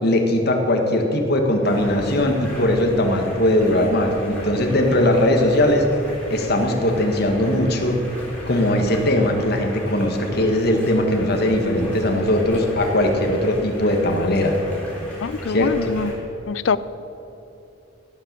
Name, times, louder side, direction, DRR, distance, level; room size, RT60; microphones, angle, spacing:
voice 1, 0.0-5.8 6.3-8.0 8.5-14.6 15.5-15.9, left 1 dB, 55° left, 3 dB, 1.7 m, -20 dB
Stream, 1.6-16.1, equal, 5° left, 3.8 m, -37 dB
voice 2, 15.2-16.1 16.5-16.8, left 5 dB, 75° left, 16 dB, 0.5 m, -23 dB
17.0 x 7.6 x 6.8 m, 2.9 s
head